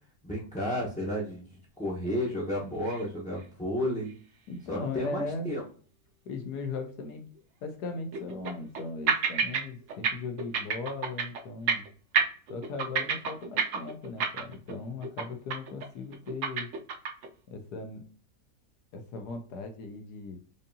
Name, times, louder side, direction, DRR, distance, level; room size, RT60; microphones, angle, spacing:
voice 1, 0.2-4.1 4.7-5.6, left 1 dB, 5° left, -4 dB, 0.6 m, -32 dB
sound 1, 2.9-3.1 3.4-3.5 4.1-4.2 7.4-7.5 8.1-8.8 9.1-9.6 9.9-10.1 10.4-11.4 11.7-11.9 12.1-14.7 15.0-15.2 15.5-15.8 16.1-17.3, right 6 dB, 60° right, 0.9 m, -28 dB
voice 2, 4.5-5.5 6.2-7.2 7.6-11.9 12.5-16.7 17.5-18.1 18.9-20.4, left 3 dB, 75° left, 5 dB, 1.4 m, -38 dB
5.1 x 2.7 x 2.6 m, 0.41 s
omnidirectional pair, 1.8 m